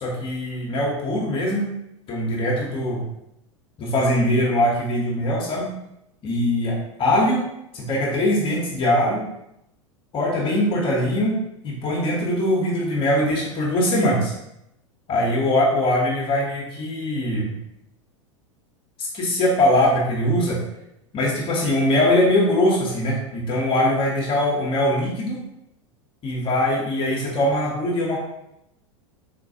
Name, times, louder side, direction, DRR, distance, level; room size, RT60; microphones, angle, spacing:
voice 1, 0.0-1.6 2.1-3.1 3.8-5.7 6.2-7.4 7.7-9.2 10.1-11.3 11.6-14.3 15.1-17.6 19.0-20.6 21.1-25.4 26.2-28.2, left 1 dB, 30° left, -3 dB, 0.8 m, -22 dB
4.1 x 2.2 x 2.7 m, 0.81 s
figure-of-eight pair, 90°, 17 cm